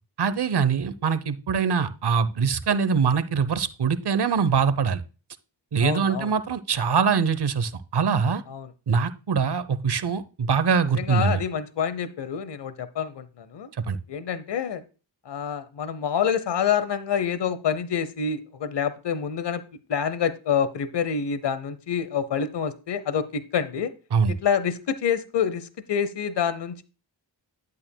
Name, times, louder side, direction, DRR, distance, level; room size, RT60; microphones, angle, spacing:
voice 1, 0.2-5.0 5.7-8.4 8.9-11.4 13.9-14.0 24.1-24.3, right 6 dB, 55° right, 13 dB, 0.9 m, -23 dB
voice 2, 5.8-6.3 8.5-8.7 10.9-13.7 14.1-14.8 15.3-19.6 19.9-23.9 24.3-26.8, left 7 dB, 60° left, 14 dB, 0.9 m, -27 dB
11.0 x 8.5 x 2.3 m, 0.33 s
cardioid pair, 45°, 47 cm